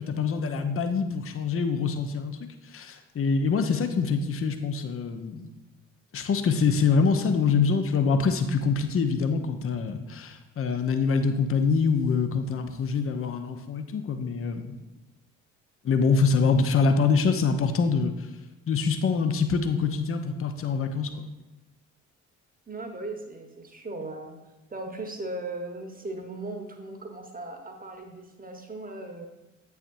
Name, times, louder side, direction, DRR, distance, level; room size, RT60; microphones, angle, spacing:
voice 1, 0.0-5.5 6.1-14.8 15.8-18.3 18.7-21.3, left 5 dB, 35° left, 7 dB, 0.8 m, -25 dB
voice 2, 22.7-24.4 24.7-29.3, right 2 dB, 20° right, 3 dB, 1.2 m, -37 dB
8.4 x 5.8 x 2.7 m, 1.0 s
figure-of-eight pair, 40°, 38 cm